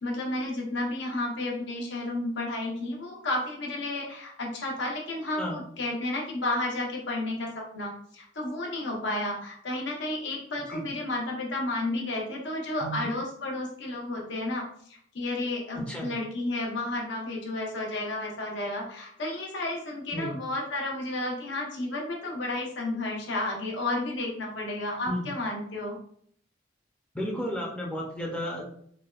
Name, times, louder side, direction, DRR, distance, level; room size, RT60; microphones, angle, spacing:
voice 1, 0.0-26.0, left 2 dB, 75° left, -1 dB, 0.8 m, -32 dB
voice 2, 15.7-16.1 20.1-20.3 25.1-25.3 27.1-28.6, equal, 5° left, -3 dB, 0.5 m, -33 dB
3.3 x 2.2 x 2.3 m, 0.62 s
head